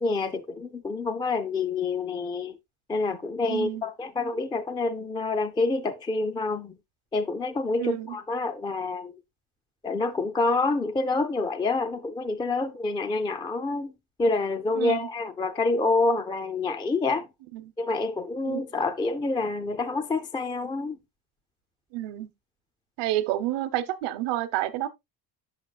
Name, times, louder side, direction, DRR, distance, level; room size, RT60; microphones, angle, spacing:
voice 1, 0.0-2.6 2.9-6.8 7.1-9.2 9.8-13.9 14.2-17.3 17.8-21.0, left 3 dB, 10° left, 0.3 m, -27 dB
voice 2, 3.5-3.8 7.8-8.2 14.7-15.1 17.5-17.7 18.4-18.6 21.9-22.3 23.0-24.9, right 14 dB, 85° right, 1.0 m, -29 dB
8.7 x 7.4 x 2.3 m
cardioid pair, 130°, 41 cm